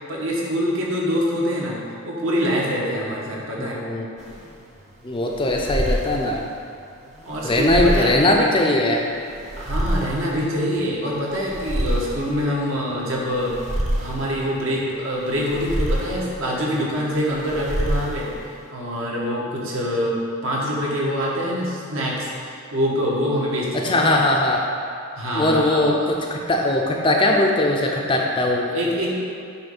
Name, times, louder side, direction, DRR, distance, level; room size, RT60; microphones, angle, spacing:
voice 1, 0.1-1.8 2.0-3.8 7.2-8.2 9.6-13.5 14.0-18.3 18.7-24.2 25.2-26.1 28.7-29.2, equal, 65° right, -4 dB, 1.4 m, -25 dB
voice 2, 3.6-4.1 5.0-6.4 7.4-9.1 23.7-24.7 25.3-28.7, left 1 dB, 25° left, 0 dB, 0.5 m, -20 dB
sound 1, 4.2-18.7, equal, 30° right, 0.9 m, -29 dB
8.9 x 3.2 x 5.4 m, 2.4 s
head